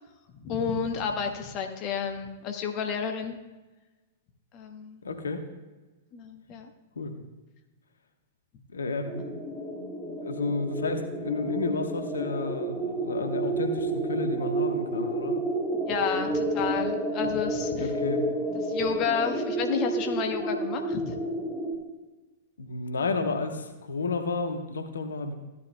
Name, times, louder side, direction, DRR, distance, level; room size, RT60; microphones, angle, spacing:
voice 1, 0.4-3.4 4.5-5.0 6.1-6.7 15.9-17.9 18.5-21.2, left 6 dB, 40° left, 5 dB, 1.1 m, -31 dB
voice 2, 5.0-5.4 7.0-7.1 8.7-9.3 10.2-15.4 17.8-18.2 22.6-25.3, left 3 dB, 75° left, 6 dB, 1.1 m, -31 dB
sound 1, 9.1-21.8, right 1 dB, 5° left, 2.5 m, -30 dB
15.5 x 11.0 x 2.2 m, 1.2 s
figure-of-eight pair, 100°, 0 cm